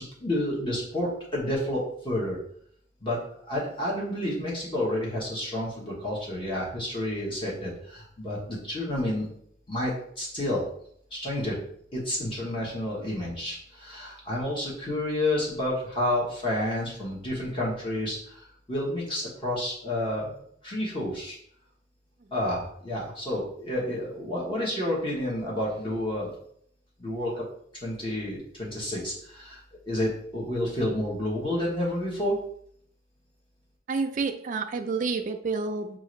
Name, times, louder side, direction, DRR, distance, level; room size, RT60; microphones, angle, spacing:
voice 1, 0.0-2.4 3.0-9.3 9.7-10.6 11.1-11.6 11.9-21.4 22.3-26.3 27.0-27.4 27.8-29.6 29.9-32.4, left 1 dB, 25° left, -5 dB, 1.0 m, -30 dB
voice 2, 33.9-36.0, right 4 dB, 40° right, 6 dB, 0.4 m, -29 dB
5.6 x 2.5 x 3.1 m, 0.65 s
head